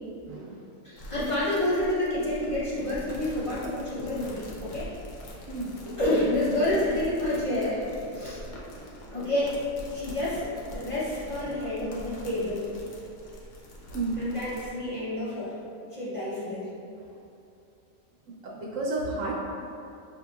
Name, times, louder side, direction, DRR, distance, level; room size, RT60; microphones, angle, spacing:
voice 1, 0.3-0.6 5.5-5.8 13.9-14.3 17.0-17.1 18.4-19.5, right 2 dB, 75° right, -4 dB, 0.9 m, -32 dB
voice 2, 0.8-4.9 6.0-7.8 8.1-8.4 9.1-9.6 9.9-12.7 14.2-15.6 15.9-16.7, left 1 dB, 35° left, -10 dB, 0.5 m, -29 dB
sound 1, 1.0-14.7, equal, 75° left, 1.1 m, -43 dB
5.7 x 2.9 x 2.3 m, 2.6 s
omnidirectional pair, 1.4 m